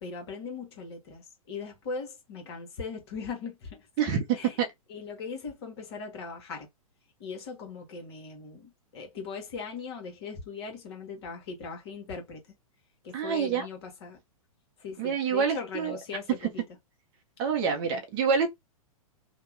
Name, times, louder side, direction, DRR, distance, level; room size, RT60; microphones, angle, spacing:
voice 1, 0.0-3.9 4.3-6.7 7.2-12.4 13.0-14.2 14.8-16.6 17.7-18.0, left 5 dB, 45° left, 1.3 m, -39 dB
voice 2, 4.0-4.7 13.1-13.7 15.0-16.0 17.4-18.5, right 6 dB, 30° right, 0.7 m, -27 dB
2.8 x 2.2 x 3.2 m
figure-of-eight pair, 105°, 19 cm